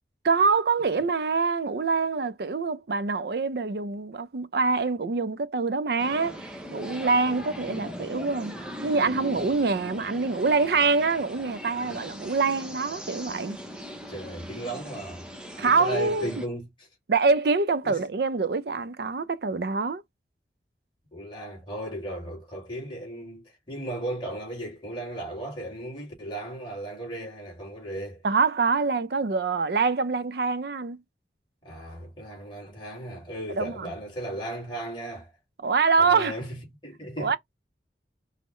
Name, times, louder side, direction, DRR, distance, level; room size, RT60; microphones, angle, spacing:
voice 1, 0.2-8.6 8.8-13.6 15.6-16.3 17.1-20.0 28.2-31.0 33.6-33.9 35.6-36.4 37.2-37.4, right 4 dB, 65° right, 0.5 m, -25 dB
sound 1, 6.0-16.5, equal, 5° right, 0.7 m, -40 dB
voice 2, 14.1-15.3 15.7-16.9 17.8-18.0 21.1-28.2 31.6-35.3 36.0-37.3, right 1 dB, 25° left, 2.2 m, -36 dB
5.3 x 2.1 x 3.1 m
head